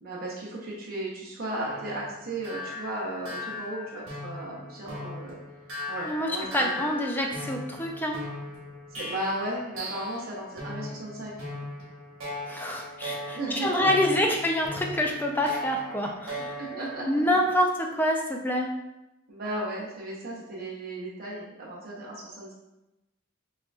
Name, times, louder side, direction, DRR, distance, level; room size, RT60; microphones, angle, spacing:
voice 1, 0.0-5.4 5.9-6.5 6.8-6.9 9.0-11.3 13.3-13.9 16.6-17.2 19.3-22.5, right 1 dB, 45° right, -5 dB, 0.9 m, -35 dB
sound 1, 1.6-10.3 10.6-17.0, left 1 dB, 75° right, 1.2 m, -39 dB
voice 2, 6.1-8.2 12.5-16.5 17.1-18.7, left 1 dB, 10° left, 1 dB, 0.4 m, -26 dB
6.1 x 2.6 x 2.4 m, 0.94 s
head